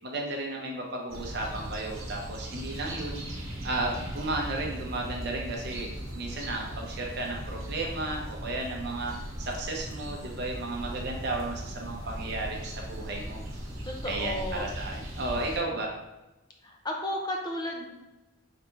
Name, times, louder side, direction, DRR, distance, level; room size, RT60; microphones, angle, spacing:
voice 1, 0.0-3.2 3.6-9.1 9.4-13.4 14.0-15.9, right 2 dB, 55° right, 0 dB, 0.7 m, -34 dB
sound 1, 1.1-15.6, equal, 75° right, 1.0 m, -38 dB
voice 2, 13.9-14.7 16.6-17.9, left 1 dB, 20° left, 1 dB, 0.6 m, -33 dB
5.0 x 3.4 x 3.0 m, 1.0 s
head